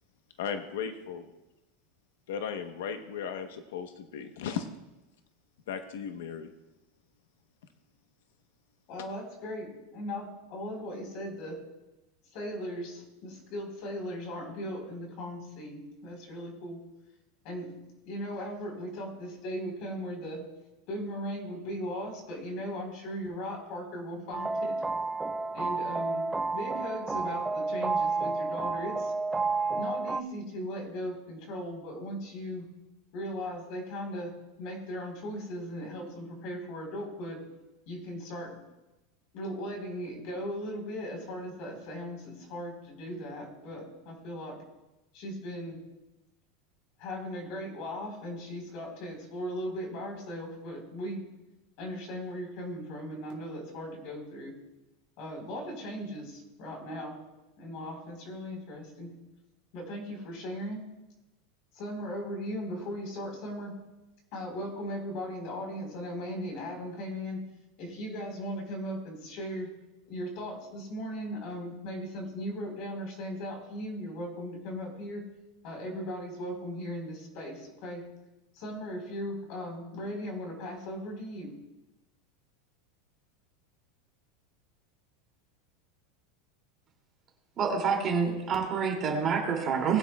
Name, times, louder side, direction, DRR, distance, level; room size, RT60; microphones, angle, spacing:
voice 1, 0.4-1.3 2.3-4.7 5.7-6.5, left 7 dB, 85° left, 7 dB, 0.9 m, -36 dB
voice 2, 8.9-11.6 12.3-16.8 17.4-17.7 18.0-20.4 20.9-24.7 25.5-26.2 26.5-29.1 29.7-32.7 33.1-34.3 34.6-37.4 37.9-38.6 39.3-44.6 45.1-45.8 47.0-51.2 51.8-54.5 55.2-57.2 57.6-59.1 59.7-60.8 61.7-63.7 64.3-67.4 67.8-69.7 70.1-75.2 75.6-78.0 78.5-81.5, equal, 45° left, 1 dB, 4.0 m, -38 dB
sound 1, 24.3-30.2, right 3 dB, 5° right, 0.3 m, -30 dB
voice 3, 87.6-90.0, right 6 dB, 25° right, 0 dB, 2.5 m, -27 dB
20.5 x 9.6 x 2.3 m, 1.0 s
supercardioid pair, 165°, 0 cm